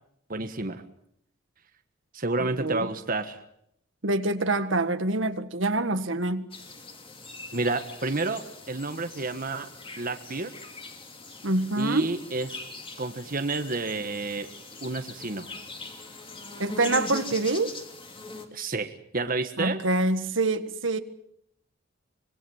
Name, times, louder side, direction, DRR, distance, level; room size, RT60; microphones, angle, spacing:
voice 1, 0.3-0.8 2.1-3.4 7.5-9.7 10.0-10.5 11.8-12.6 13.0-14.5 14.8-15.5 18.5-19.8, right 3 dB, 45° right, 1.5 m, -30 dB
voice 2, 2.6-2.9 4.0-6.5 11.4-12.1 16.6-17.7 19.6-21.0, right 2 dB, 65° right, 1.7 m, -26 dB
sound 1, 6.5-18.5, left 3 dB, 25° left, 3.1 m, -41 dB
25.5 x 22.0 x 7.3 m
head